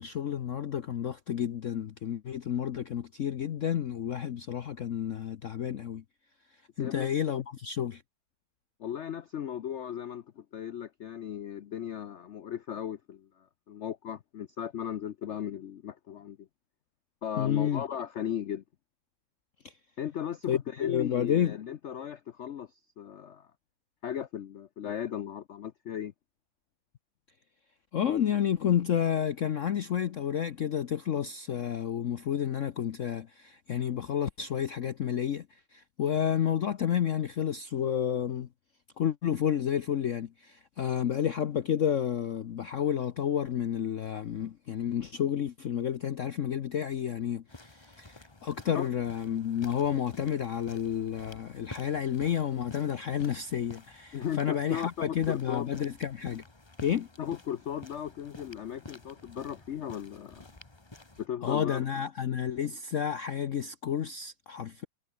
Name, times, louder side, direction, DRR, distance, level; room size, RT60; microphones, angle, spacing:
voice 1, 0.0-6.0 6.8-8.0 17.4-17.8 20.5-21.6 27.9-38.5 39.0-56.4 56.8-57.1 61.4-64.9, left 9 dB, 60° left, 0.9 m, -30 dB
voice 2, 6.8-7.1 8.8-16.5 17.2-18.6 20.0-23.5 24.0-26.1 48.7-48.9 54.1-55.7 57.2-60.5 61.2-61.8, left 9 dB, 90° left, 0.6 m, -37 dB
sound 1, 47.5-61.3, left 2 dB, 15° left, 1.4 m, -51 dB
omnidirectional pair, 2.1 m